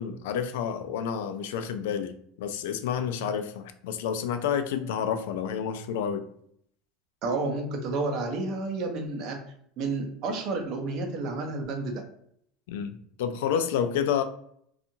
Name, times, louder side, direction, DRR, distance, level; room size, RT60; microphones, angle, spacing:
voice 1, 0.0-6.3 12.7-14.2, left 8 dB, 85° left, 0.3 m, -29 dB
voice 2, 7.2-9.4 9.8-12.0, right 3 dB, 40° right, 0.5 m, -30 dB
2.6 x 2.4 x 2.7 m
cardioid pair, 165°, 0 cm